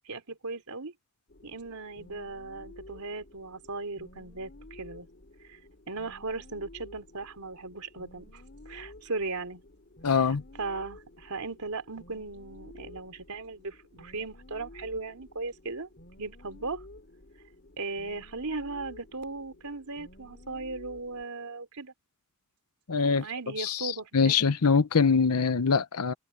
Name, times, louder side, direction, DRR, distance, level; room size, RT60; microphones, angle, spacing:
voice 1, 0.1-0.9 1.4-5.1 5.5-5.6 5.9-9.6 10.1-15.9 16.2-16.8 17.8-21.9 22.9-24.4, right 3 dB, 90° right, 3.3 m, -37 dB
sound 1, 1.3-21.2, left 1 dB, 50° left, 3.3 m, -52 dB
voice 2, 10.0-10.4 22.9-23.3 23.6-26.1, left 5 dB, 85° left, 0.8 m, -24 dB
open air
head